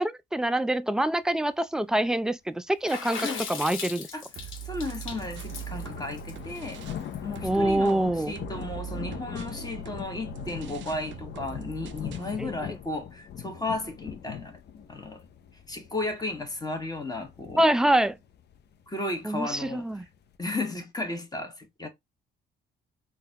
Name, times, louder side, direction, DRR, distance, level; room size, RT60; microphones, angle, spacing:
voice 1, 0.0-4.1 7.4-8.3 12.4-12.5 17.6-18.2 19.2-20.0, right 1 dB, 5° right, 0.3 m, -25 dB
Water / Splash splatter, 2.9-7.3, left 5 dB, 85° left, 1.1 m, -38 dB
sound 1, 4.4-20.4, left 8 dB, 60° left, 0.5 m, -41 dB
sound 2, 4.4-7.1 7.4-12.4, right 11 dB, 65° right, 0.4 m, -42 dB
voice 2, 4.6-6.9 7.2-14.6 14.9-15.2 15.7-17.6 18.9-19.9 20.4-21.9, left 2 dB, 20° left, 1.3 m, -34 dB
3.9 x 2.3 x 2.7 m
cardioid pair, 90°, 20 cm